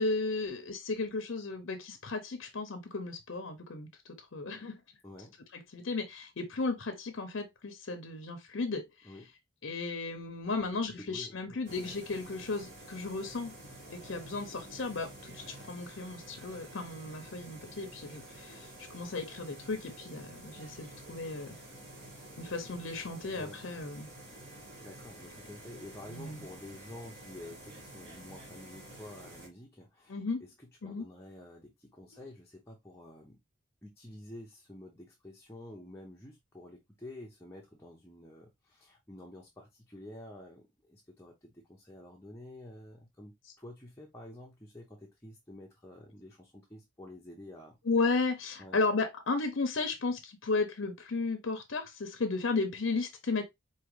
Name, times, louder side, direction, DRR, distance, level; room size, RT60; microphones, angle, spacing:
voice 1, 0.0-3.9 4.3-4.8 5.5-9.1 9.6-13.6 13.9-21.6 22.4-24.1 26.1-26.4 30.1-30.4 30.8-31.1 32.1-32.3 47.9-53.4, left 3 dB, 65° left, 0.7 m, -34 dB
voice 2, 5.0-5.3 9.0-9.3 10.9-11.6 23.3-23.6 24.8-33.4 33.8-47.8 48.6-48.8, left 1 dB, 10° left, 0.7 m, -49 dB
sound 1, 11.6-29.5, right 1 dB, 50° right, 2.2 m, -50 dB
4.9 x 2.8 x 3.1 m
head